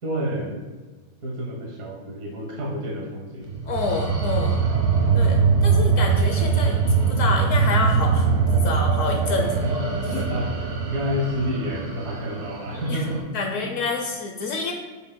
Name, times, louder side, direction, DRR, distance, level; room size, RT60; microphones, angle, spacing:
voice 1, 0.0-0.6 1.2-3.5 9.4-13.2 13.6-13.7, equal, 50° right, -2 dB, 1.5 m, -29 dB
sound 1, 3.5-13.2, right 5 dB, 75° right, 2.1 m, -22 dB
voice 2, 3.7-4.6 5.1-6.8 7.1-9.5 9.9-10.1 12.7-13.0 13.3-14.7, left 4 dB, 80° left, 2 dB, 0.7 m, -28 dB
8.3 x 7.4 x 2.2 m, 1.3 s
omnidirectional pair, 2.2 m